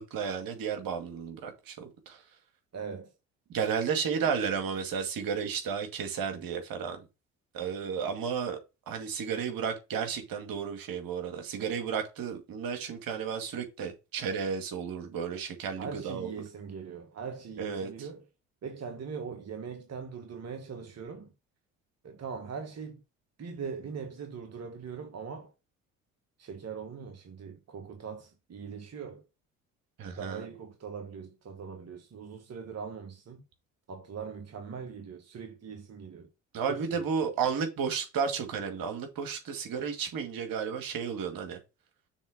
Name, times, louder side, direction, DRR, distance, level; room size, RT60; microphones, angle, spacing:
voice 1, 0.0-2.2 3.5-7.1 7.5-8.6 8.9-16.3 17.6-17.9 30.0-30.4 36.5-41.6, right 6 dB, 60° right, 2.2 m, -33 dB
voice 2, 2.7-3.1 4.1-4.4 15.8-18.3 18.6-21.3 22.0-23.0 23.4-25.5 26.4-29.2 30.1-33.4 33.9-36.3 36.7-37.3, right 6 dB, 40° right, 1.5 m, -41 dB
7.1 x 3.5 x 6.0 m
hypercardioid pair, 55°, 38 cm